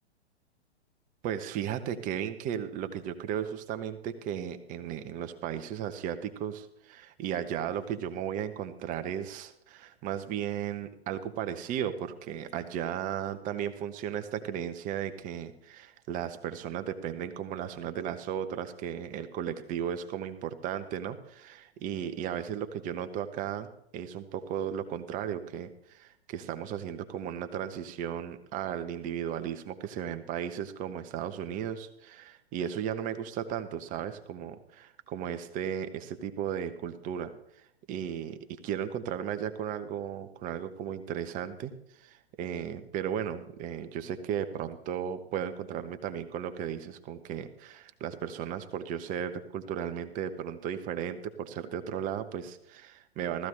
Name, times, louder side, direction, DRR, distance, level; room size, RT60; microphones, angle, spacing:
voice 1, 1.2-37.3 37.9-38.4 38.6-41.7 42.0-53.5, right 9 dB, 25° right, 10 dB, 1.1 m, -35 dB
17.0 x 14.5 x 3.3 m, 0.76 s
figure-of-eight pair, 110°, 33 cm